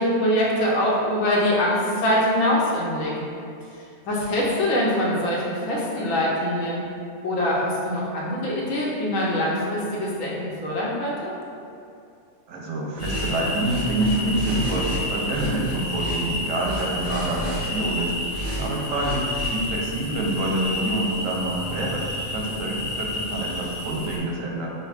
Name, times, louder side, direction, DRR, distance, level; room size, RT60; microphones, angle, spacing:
voice 1, 0.0-3.1 4.1-6.8 7.2-11.3, left 1 dB, 85° left, -5 dB, 1.1 m, -23 dB
voice 2, 12.5-18.1 18.6-22.1 22.3-24.7, right 1 dB, 85° right, -2 dB, 1.0 m, -27 dB
sound 1, 13.0-24.2, left 1 dB, 65° left, 0.4 m, -31 dB
sound 2, 13.0-13.3 13.6-15.0 15.3-16.2 16.6-17.6 18.3-18.6 19.0-19.5, right 1 dB, 65° right, 1.7 m, -31 dB
5.1 x 2.2 x 2.4 m, 2.5 s
omnidirectional pair, 1.3 m